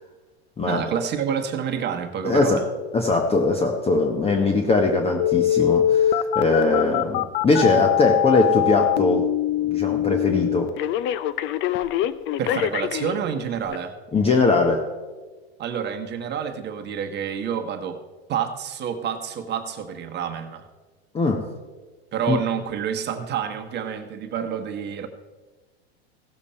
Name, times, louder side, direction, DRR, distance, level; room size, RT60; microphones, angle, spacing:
voice 1, 0.7-2.6 12.4-13.9 15.6-18.0 18.3-20.7 22.1-25.1, right 7 dB, 35° right, 5 dB, 1.2 m, -28 dB
voice 2, 2.2-2.6 2.9-9.3 9.6-10.7 14.1-14.9 21.1-21.5 22.3-22.4, left 3 dB, 20° left, 4 dB, 1.1 m, -21 dB
Telephone, 5.2-13.2 13.7-13.8, left 12 dB, 40° left, 0.6 m, -23 dB
16.5 x 7.0 x 4.3 m, 1.3 s
hypercardioid pair, 110°, 32 cm